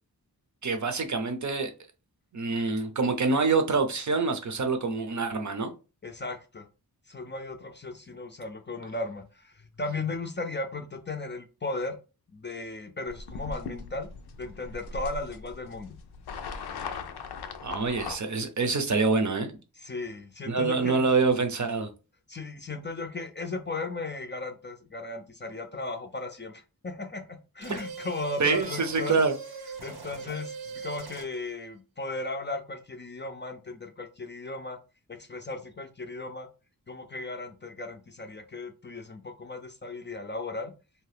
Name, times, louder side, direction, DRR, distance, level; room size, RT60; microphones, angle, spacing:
voice 1, 0.6-1.7 2.3-5.7 17.6-19.5 20.5-21.9 27.7-27.8 28.4-29.3, right 4 dB, 50° right, 0.6 m, -26 dB
voice 2, 6.0-6.7 7.1-12.0 12.3-14.1 14.4-16.0 19.8-21.1 22.3-29.2 29.8-34.8 35.1-36.5 36.9-40.7, left 2 dB, 30° left, 0.4 m, -36 dB
sound 1, 13.1-18.2, left 4 dB, 85° left, 0.5 m, -39 dB
sound 2, 27.6-31.5, right 4 dB, 75° right, 0.8 m, -41 dB
2.7 x 2.2 x 3.3 m
wide cardioid pair, 65°, 38 cm